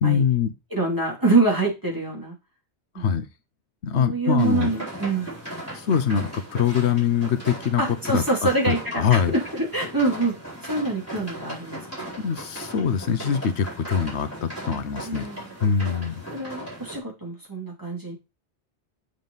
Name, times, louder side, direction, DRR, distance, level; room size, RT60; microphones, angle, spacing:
voice 1, 0.0-0.5 2.9-3.3 3.8-4.7 5.7-9.3 12.2-15.3 15.6-16.2, left 7 dB, 80° left, 10 dB, 1.1 m, -23 dB
voice 2, 0.7-2.3 2.9-3.1 3.9-5.4 7.8-10.3 10.6-12.1 15.0-15.5 16.3-18.1, right 3 dB, 20° right, -2 dB, 2.8 m, -25 dB
sound 1, 4.4-17.0, right 1 dB, 15° left, 4.3 m, -38 dB
7.2 x 6.5 x 3.9 m, 0.25 s
omnidirectional pair, 1.1 m